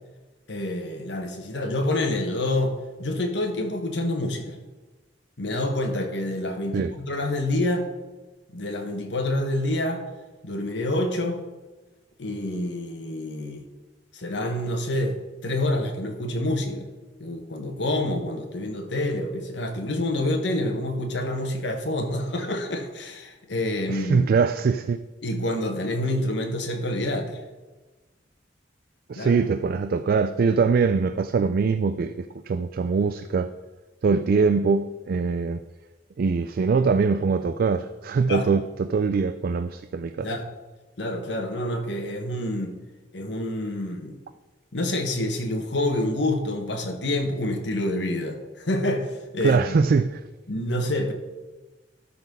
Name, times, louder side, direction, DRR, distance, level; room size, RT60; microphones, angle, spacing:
voice 1, 0.5-4.6 5.4-7.9 8.5-10.0 10.4-11.4 12.2-13.6 14.1-16.9 17.2-24.3 25.2-27.4 29.1-29.3 38.3-38.5 40.2-40.4 41.0-42.7 43.1-44.2 44.7-49.8 50.5-51.1, left 1 dB, 70° left, 1.4 m, -27 dB
voice 2, 23.9-25.0 29.1-32.1 32.5-33.5 34.0-35.6 36.2-40.3 49.4-50.2, right 5 dB, 55° right, 0.3 m, -22 dB
12.5 x 4.2 x 5.4 m
head